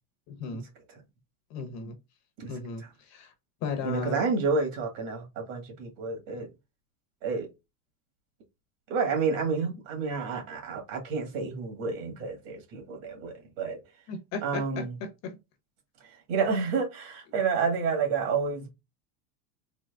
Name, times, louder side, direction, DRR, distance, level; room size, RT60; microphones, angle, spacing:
voice 1, 0.3-0.6 1.5-2.0 2.5-3.3 3.6-4.2 14.1-14.8 15.2-15.3, left 5 dB, 40° left, 1.0 m, -35 dB
voice 2, 3.8-6.5 7.2-7.5 8.9-13.8 14.4-15.0 16.0-18.7, right 5 dB, 50° right, 1.9 m, -30 dB
4.0 x 3.0 x 3.4 m
supercardioid pair, 160°, 44 cm